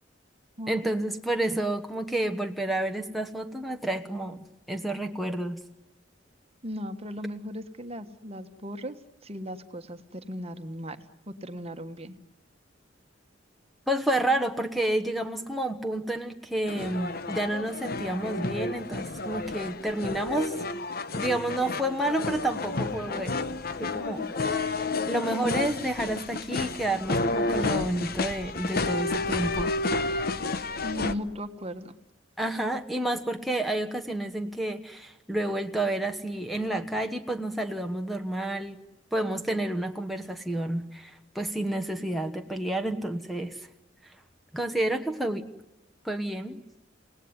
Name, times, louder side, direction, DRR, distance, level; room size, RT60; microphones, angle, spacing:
voice 1, 0.7-5.6 13.9-20.5 21.2-23.5 23.8-24.3 25.1-29.7 32.4-38.8 39.1-43.6 44.5-45.5 46.0-46.6, right 1 dB, ahead, 3 dB, 1.1 m, -30 dB
voice 2, 6.6-12.2 30.8-32.0, equal, 30° right, 9 dB, 1.4 m, -37 dB
sound 1, 16.7-31.1, left 3 dB, 50° left, 1.1 m, -31 dB
28.5 x 18.0 x 9.7 m, 1.0 s
head